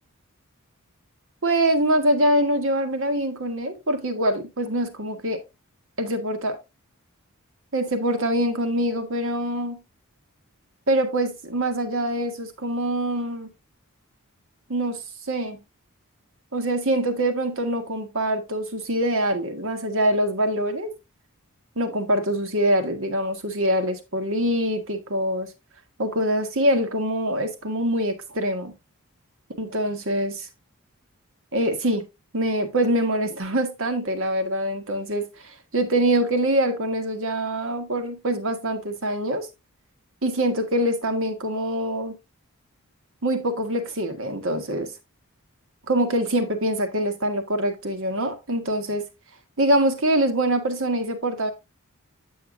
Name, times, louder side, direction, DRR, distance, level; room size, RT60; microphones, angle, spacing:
voice 1, 1.4-5.4 6.0-6.6 7.7-9.8 10.9-13.5 14.7-15.6 16.5-20.9 21.7-25.5 26.0-28.7 29.6-30.3 31.5-32.1 32.3-39.5 40.2-42.1 43.2-44.9 45.9-49.1 49.6-51.5, right 1 dB, 65° right, 1.5 m, -24 dB
8.5 x 7.9 x 2.6 m
head